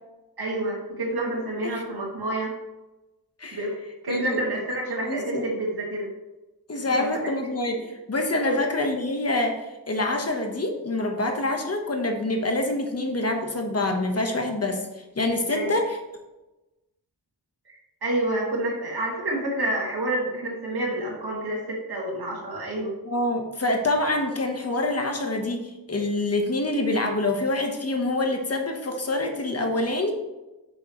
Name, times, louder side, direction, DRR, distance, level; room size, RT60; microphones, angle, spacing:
voice 1, 0.4-2.5 3.5-3.7 4.0-6.1 7.0-7.3 8.4-8.6 15.5-15.7 17.7-22.9, right 1 dB, 90° right, -2 dB, 2.6 m, -28 dB
voice 2, 4.1-4.4 5.1-5.4 6.7-14.8 15.1-16.0 23.0-30.1, left 2 dB, 40° left, 3 dB, 1.3 m, -26 dB
9.7 x 7.0 x 3.2 m, 1.0 s
wide cardioid pair, 125°, 37 cm